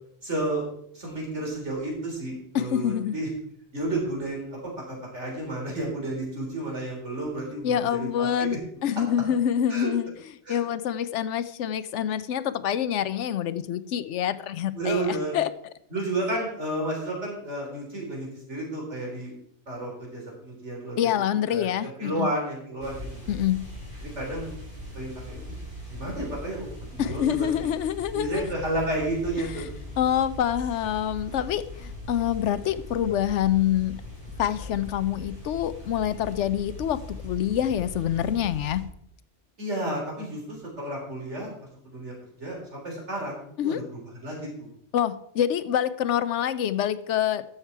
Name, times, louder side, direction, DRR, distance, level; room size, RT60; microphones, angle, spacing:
voice 1, 0.2-0.7 0.9-3.3 3.7-8.6 9.7-9.9 10.5-10.6 14.7-15.3 15.9-19.3 19.7-21.0 21.5-23.4 24.0-24.5 24.9-25.4 25.9-27.7 28.1-29.5 39.6-42.1 42.4-44.7, right 1 dB, 70° right, -2 dB, 4.0 m, -32 dB
voice 2, 2.5-3.2 7.6-10.1 10.5-15.5 21.0-22.3 23.3-23.6 27.0-28.5 29.4-29.7 30.0-34.0 34.4-38.8 43.6-43.8 44.9-47.4, left 10 dB, 80° left, 14 dB, 0.9 m, -26 dB
sound 1, 22.8-38.8, left 1 dB, 45° left, 5.5 m, -40 dB
12.5 x 7.3 x 4.6 m, 0.70 s
omnidirectional pair, 1.2 m